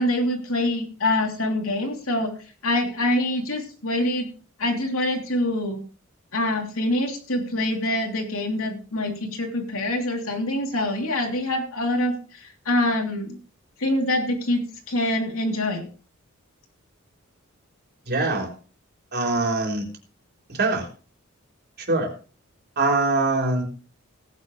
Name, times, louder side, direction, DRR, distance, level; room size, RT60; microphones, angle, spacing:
voice 1, 0.0-2.3 2.6-4.3 4.6-5.8 6.3-13.4 13.8-15.9, left 1 dB, 75° left, 2 dB, 3.2 m, -25 dB
voice 2, 18.1-18.5 19.1-19.9 20.5-20.9 21.8-22.1 22.8-23.6, right 3 dB, 50° right, 2 dB, 3.8 m, -23 dB
18.0 x 9.8 x 3.2 m, 0.37 s
head